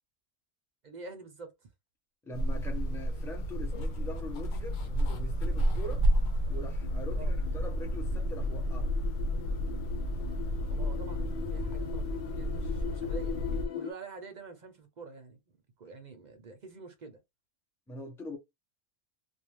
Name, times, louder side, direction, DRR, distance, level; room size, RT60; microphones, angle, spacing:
voice 1, 0.8-1.5 7.2-7.3 10.7-13.4 13.7-15.4 15.8-17.2, right 4 dB, 50° right, 0.5 m, -46 dB
voice 2, 2.2-6.1 6.5-8.9 17.9-18.4, left 1 dB, 5° left, 0.4 m, -42 dB
sound 1, 2.3-13.7, equal, 85° left, 1.1 m, -31 dB
sound 2, 6.8-13.9, left 10 dB, 65° left, 0.6 m, -42 dB
2.4 x 2.4 x 3.1 m
omnidirectional pair, 1.3 m